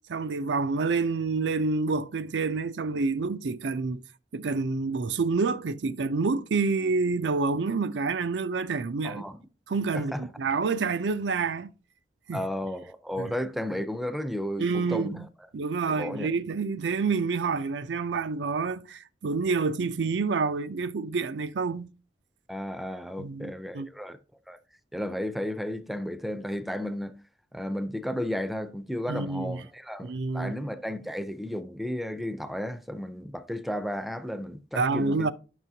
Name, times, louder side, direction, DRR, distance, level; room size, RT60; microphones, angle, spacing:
voice 1, 0.1-4.0 4.3-9.2 9.7-11.7 12.3-12.4 13.2-13.3 14.6-15.2 15.5-21.9 23.2-23.9 29.1-29.6 30.0-30.5 34.7-35.3, right 4 dB, 85° right, 0.5 m, -28 dB
voice 2, 9.0-9.4 9.9-10.3 12.3-15.3 15.9-16.3 22.5-24.2 24.5-24.6 24.9-27.2 27.5-35.3, equal, ahead, 0.5 m, -33 dB
9.9 x 6.1 x 2.7 m
head